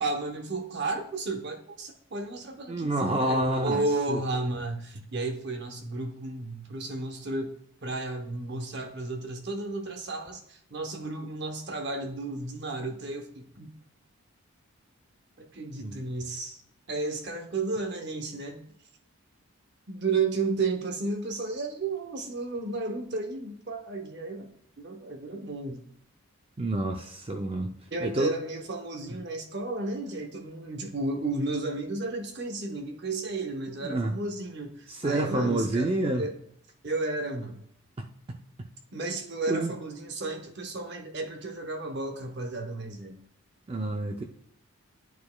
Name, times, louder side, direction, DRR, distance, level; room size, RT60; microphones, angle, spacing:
voice 1, 0.0-2.9 3.2-7.5 7.8-13.7 15.4-16.6 16.9-18.6 19.9-24.5 24.8-25.8 27.9-36.3 36.8-37.6 38.9-43.2, right 3 dB, 50° right, 5 dB, 0.8 m, -33 dB
voice 2, 2.7-3.8 4.1-4.2 15.8-16.0 26.6-27.7 28.0-28.3 33.8-34.2 34.9-36.3 39.5-39.7 43.7-44.2, right 1 dB, 25° right, 3 dB, 0.4 m, -28 dB
10.5 x 4.6 x 2.2 m, 0.67 s
head